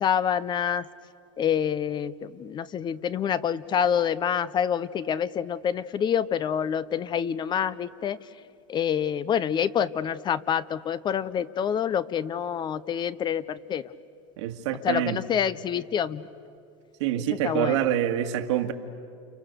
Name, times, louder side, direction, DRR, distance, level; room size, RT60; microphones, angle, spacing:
voice 1, 0.0-0.9 1.4-8.2 8.7-13.9 14.8-16.2 17.2-17.9, left 8 dB, 30° left, 16 dB, 0.7 m, -27 dB
voice 2, 14.4-15.2 17.0-18.7, right 11 dB, 70° right, 6 dB, 2.0 m, -26 dB
29.5 x 29.0 x 6.8 m, 2.4 s
supercardioid pair, 115°, 15 cm